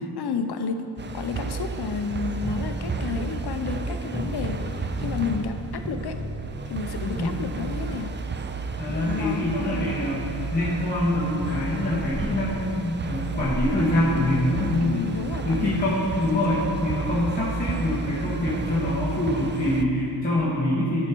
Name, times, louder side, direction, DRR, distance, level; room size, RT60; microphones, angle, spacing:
voice 1, 0.2-0.8 1.1-6.2 6.7-8.1 8.9-9.9 14.8-15.9 16.3-16.7, left 5 dB, 65° left, 6 dB, 0.7 m, -31 dB
sound 1, 1.0-19.9, right 4 dB, 30° right, 0.4 m, -32 dB
sound 2, 2.4-7.9, right 1 dB, 5° right, 0.8 m, -35 dB
voice 2, 7.1-7.4 8.8-15.0 15.4-21.1, left 1 dB, 20° left, -10 dB, 1.6 m, -25 dB
11.5 x 5.5 x 4.5 m, 2.7 s
wide cardioid pair, 120°, 43 cm